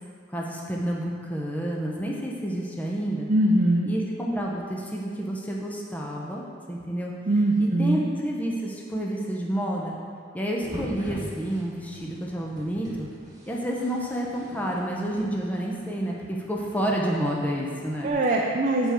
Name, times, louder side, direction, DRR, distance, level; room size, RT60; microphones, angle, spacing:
voice 1, 0.3-3.3 3.9-7.1 7.6-9.9 10.3-13.1 13.5-18.1, equal, 10° left, -3 dB, 0.8 m, -29 dB
voice 2, 3.3-3.9 7.3-8.1 18.0-18.9, right 1 dB, 45° right, -1 dB, 0.6 m, -22 dB
sound 1, 10.6-18.1, equal, 20° right, 1.7 m, -43 dB
7.1 x 4.4 x 6.8 m, 2.2 s
head